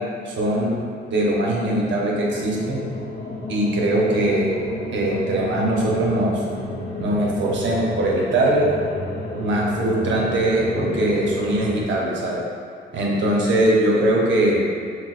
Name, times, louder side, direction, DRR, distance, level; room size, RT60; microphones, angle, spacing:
voice 1, 0.2-0.7 1.1-2.8 3.5-4.6 4.9-6.4 7.0-8.7 9.4-12.4 12.9-14.6, right 1 dB, 70° right, -3 dB, 0.8 m, -21 dB
sound 1, 1.6-11.8, left 1 dB, 35° left, 0.8 m, -31 dB
6.1 x 2.2 x 2.4 m, 2.2 s
cardioid pair, 90°, 20 cm